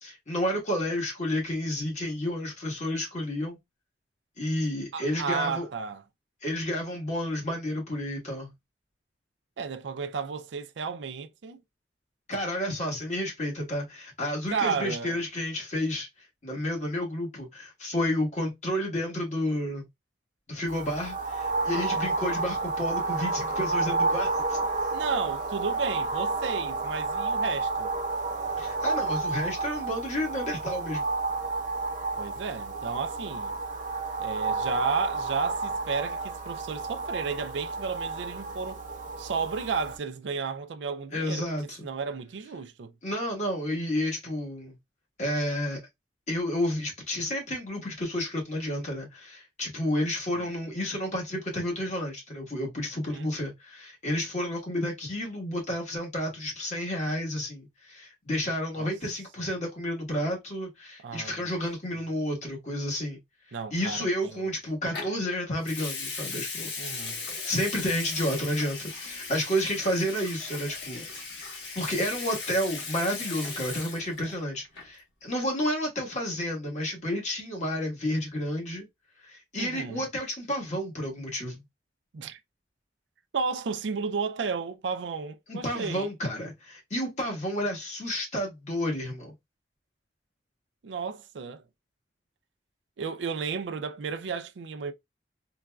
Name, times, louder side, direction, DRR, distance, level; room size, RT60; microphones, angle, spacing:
voice 1, 0.0-3.6 4.4-5.7 6.4-8.5 12.3-19.9 20.5-24.6 28.6-31.1 41.1-41.8 43.0-44.8 45.2-45.8 46.3-63.2 63.7-66.7 67.5-71.1 71.7-78.9 79.2-81.6 85.5-89.3, left 1 dB, 40° left, 1.4 m, -31 dB
voice 2, 4.9-6.0 9.6-11.6 14.5-15.2 24.9-27.9 32.2-33.5 34.2-38.8 39.2-41.5 41.8-42.9 50.4-50.5 53.1-53.3 58.8-58.9 59.4-59.5 61.0-61.5 63.5-64.5 66.8-67.2 79.6-80.0 82.1-82.4 83.3-86.1 90.8-91.6 93.0-94.9, right 5 dB, 90° right, 0.4 m, -33 dB
sound 1, 20.7-40.0, right 3 dB, 45° right, 0.7 m, -31 dB
Water tap faucet / Sink (filling or washing) / Liquid, 64.9-65.2 65.6-74.4 74.6-75.0, left 4 dB, 85° left, 1.3 m, -37 dB
3.9 x 2.4 x 2.2 m
head